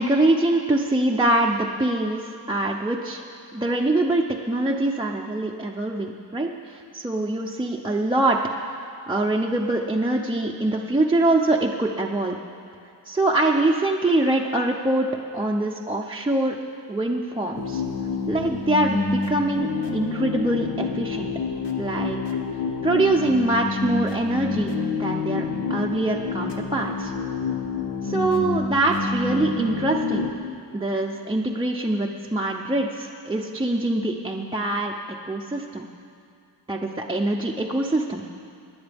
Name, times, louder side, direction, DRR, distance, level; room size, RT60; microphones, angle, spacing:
voice 1, 0.0-3.2 3.5-8.4 8.7-12.4 13.0-15.1 15.3-16.6 16.9-17.8 18.3-21.3 21.8-22.2 22.8-24.7 25.0-25.4 25.7-27.1 28.0-30.3 30.7-34.9 35.2-35.9 36.7-38.2, right 2 dB, 10° right, -2 dB, 0.6 m, -24 dB
sound 1, 17.5-30.3, left 4 dB, 85° left, 1.2 m, -28 dB
24.5 x 10.5 x 3.5 m, 2.4 s
wide cardioid pair, 155°, 41 cm